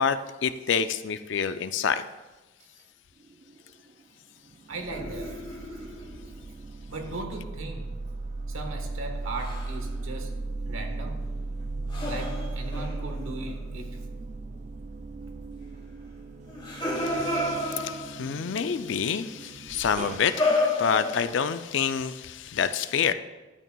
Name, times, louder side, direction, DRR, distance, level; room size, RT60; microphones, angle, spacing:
voice 1, 0.0-2.0 17.0-23.1, left 7 dB, 60° left, 11 dB, 0.4 m, -28 dB
sound 1, 3.2-4.0 4.4-20.3, right 3 dB, 35° right, 0.4 m, -37 dB
voice 2, 4.7-5.8 6.9-7.9 8.5-10.3 10.6-11.3 12.1-13.9, right 2 dB, 80° right, 3 dB, 1.3 m, -38 dB
sound 2, 4.9-6.3 9.3-9.8 11.9-13.6 16.5-18.3 19.8-21.6, left 2 dB, 25° left, 1.3 m, -31 dB
12.0 x 8.5 x 2.3 m, 1.2 s
head